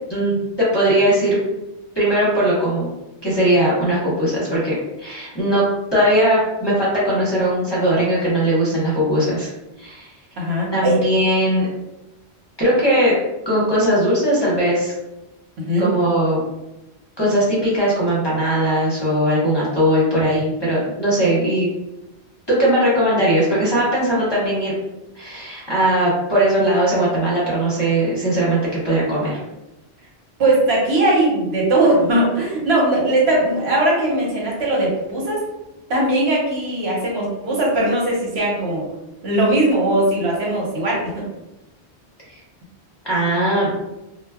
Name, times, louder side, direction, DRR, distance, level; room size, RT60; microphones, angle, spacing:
voice 1, 0.1-1.4 1.9-2.9 3.2-5.6 5.9-9.5 9.8-10.1 10.7-11.7 12.6-13.1 13.5-14.9 15.8-16.4 17.2-21.7 22.5-24.7 25.2-29.4 43.0-43.7, right 1 dB, 25° left, -8 dB, 0.7 m, -19 dB
voice 2, 10.4-11.0 15.6-15.9 30.4-35.4 35.9-38.8 39.2-41.2, right 1 dB, 70° right, -3 dB, 1.0 m, -19 dB
2.2 x 2.0 x 3.4 m, 0.97 s
omnidirectional pair, 1.1 m